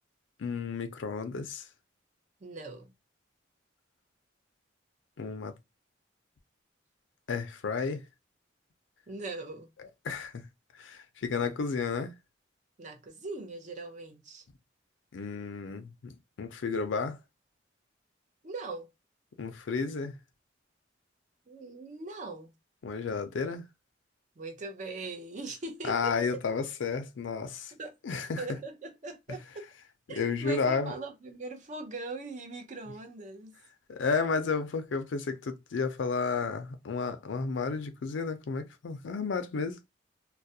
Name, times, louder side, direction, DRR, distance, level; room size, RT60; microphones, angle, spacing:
voice 1, 0.4-1.6 5.2-5.5 7.3-8.0 10.0-10.4 10.8-12.1 15.1-17.2 19.4-20.2 22.8-23.6 25.9-27.7 28.0-28.4 30.1-30.9 33.9-39.8, left 5 dB, 80° left, 0.4 m, -32 dB
voice 2, 2.4-2.9 9.1-9.7 12.8-14.4 18.4-18.9 21.5-22.5 24.4-26.1 27.8-28.0 28.4-29.7 30.1-33.6, right 3 dB, 40° right, 0.5 m, -40 dB
2.3 x 2.0 x 2.6 m
head